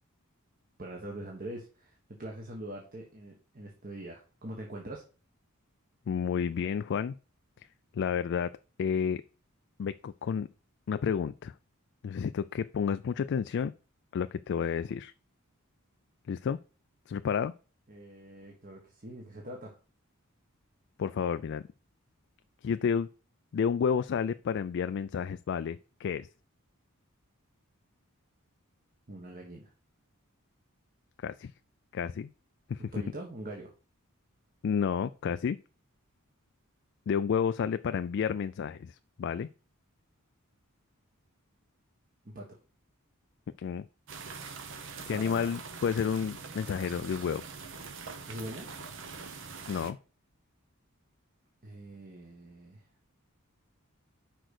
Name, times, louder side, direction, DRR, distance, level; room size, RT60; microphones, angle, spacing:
voice 1, 0.8-5.0 17.9-19.8 29.1-29.7 32.9-33.7 42.2-42.5 45.1-45.5 48.3-48.7 51.6-52.9, right 1 dB, 40° right, 0 dB, 1.4 m, -43 dB
voice 2, 6.1-7.2 7.6-7.7 7.9-8.5 8.8-9.2 9.8-10.5 10.9-11.5 12.0-13.7 14.1-15.1 16.3-16.6 17.1-17.5 21.0-21.7 22.6-23.1 23.5-26.3 31.2-31.5 31.9-32.3 32.7-32.9 34.6-35.6 37.1-39.5 43.6-43.9 45.1-47.4 49.7-50.0, left 7 dB, 55° left, 12 dB, 0.3 m, -31 dB
sound 1, 44.1-49.9, right 5 dB, 60° right, 1.0 m, -43 dB
6.1 x 5.1 x 6.5 m, 0.36 s
head